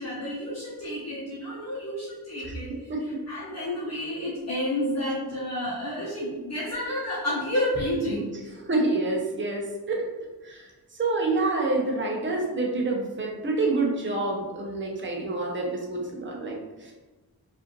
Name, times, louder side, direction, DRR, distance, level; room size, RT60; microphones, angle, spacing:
voice 1, 0.0-2.9 3.3-8.3, left 1 dB, 40° left, -8 dB, 0.9 m, -30 dB
voice 2, 8.6-10.0 10.4-10.7 11.0-16.9, right 2 dB, 30° right, -1 dB, 0.7 m, -27 dB
4.7 x 2.6 x 3.1 m, 1.2 s
wide cardioid pair, 180°, 38 cm